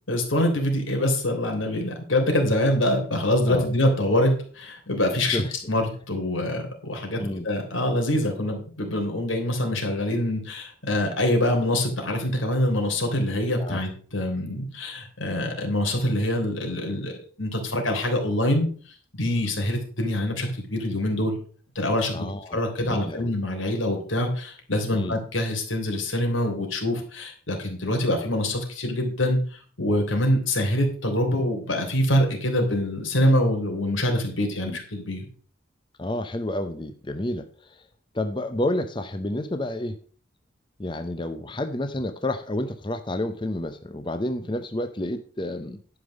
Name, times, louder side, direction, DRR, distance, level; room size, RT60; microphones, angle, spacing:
voice 1, 0.1-5.4 5.7-17.1 17.4-18.7 19.1-21.3 21.7-22.3 22.5-29.4 29.8-35.2, left 1 dB, 85° left, 3 dB, 3.3 m, -25 dB
voice 2, 22.1-23.3 24.9-25.2 34.6-34.8 36.0-37.9 38.1-40.0 40.8-45.8, left 1 dB, 25° left, 7 dB, 0.6 m, -30 dB
11.5 x 5.3 x 6.4 m, 0.43 s
head